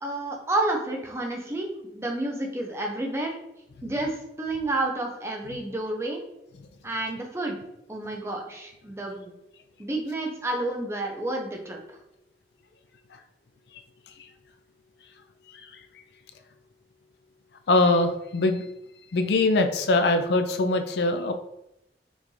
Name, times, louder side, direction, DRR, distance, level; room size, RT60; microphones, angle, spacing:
voice 1, 0.0-1.7 1.9-3.4 3.8-6.2 6.8-7.6 7.9-9.3 9.8-12.0, right 2 dB, 15° right, 1 dB, 0.5 m, -30 dB
voice 2, 17.7-18.7 19.1-21.3, left 2 dB, 70° left, 6 dB, 0.4 m, -22 dB
5.2 x 2.4 x 3.1 m, 0.85 s
head